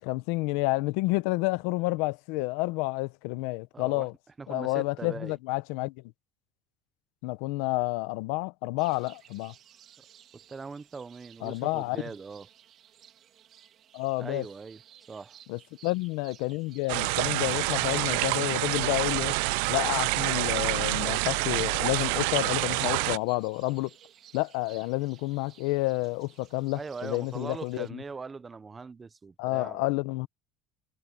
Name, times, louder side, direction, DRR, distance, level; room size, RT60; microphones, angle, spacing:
voice 1, 0.0-4.1 4.5-6.0 7.2-9.5 11.4-12.0 13.9-14.4 15.5-19.4 19.7-23.9 24.3-28.0 29.4-30.3, left 22 dB, 80° left, 0.8 m, -30 dB
voice 2, 3.7-4.1 4.4-5.4 10.3-12.5 14.2-14.8 15.1-15.4 26.7-29.9, right 4 dB, 15° right, 0.7 m, -41 dB
sound 1, 8.8-27.9, right 10 dB, 40° right, 2.5 m, -56 dB
sound 2, 16.9-23.2, right 25 dB, 85° right, 0.4 m, -27 dB
cardioid pair, 160°, 0 cm